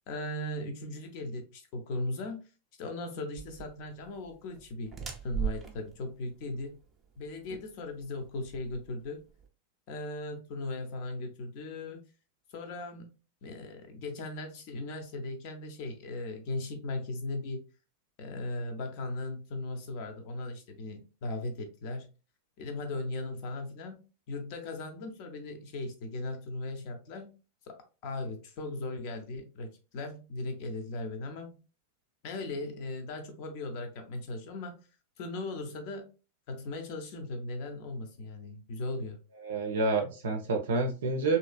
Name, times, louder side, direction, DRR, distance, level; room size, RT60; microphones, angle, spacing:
voice 1, 0.1-2.4 2.8-5.0 5.2-6.8 7.2-9.2 9.9-12.0 12.5-17.6 18.2-22.1 22.6-27.3 27.7-27.8 28.0-31.6 32.2-34.9 35.2-36.1 36.5-39.2, left 2 dB, 45° left, 0.7 m, -38 dB
sound 1, 3.4-9.5, right 8 dB, 20° right, 0.6 m, -40 dB
voice 2, 39.4-41.4, right 3 dB, 60° right, 0.4 m, -28 dB
3.1 x 2.8 x 2.3 m
figure-of-eight pair, 90°, 0 cm